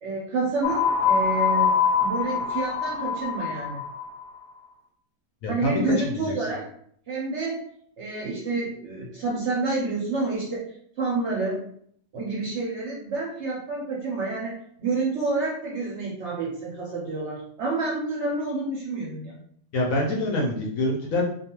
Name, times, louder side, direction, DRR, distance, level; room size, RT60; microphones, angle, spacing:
voice 1, 0.0-1.7 2.0-3.8 5.5-6.7 7.1-7.6 8.0-11.6 12.1-19.4, right 3 dB, 65° right, -4 dB, 0.7 m, -29 dB
sound 1, 0.6-4.2, left 6 dB, 85° left, 1.1 m, -24 dB
voice 2, 5.4-6.2 19.7-21.3, left 1 dB, 70° left, -2 dB, 0.9 m, -25 dB
2.4 x 2.3 x 2.9 m, 0.65 s
omnidirectional pair, 1.7 m